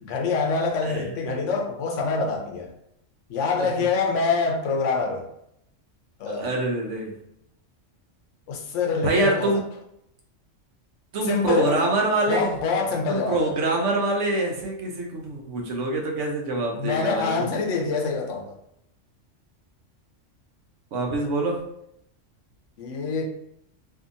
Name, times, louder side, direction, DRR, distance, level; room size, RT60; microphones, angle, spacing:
voice 1, 0.0-2.7 3.3-5.3 6.2-6.5 8.5-9.6 11.2-11.8 12.3-13.5 16.8-18.6 22.8-23.2, left 4 dB, 75° left, 2 dB, 0.9 m, -25 dB
voice 2, 6.3-7.1 9.0-9.6 11.1-12.5 13.1-17.5 20.9-21.6, right 2 dB, 75° right, 0 dB, 1.0 m, -25 dB
2.7 x 2.7 x 2.5 m, 0.76 s
omnidirectional pair, 1.3 m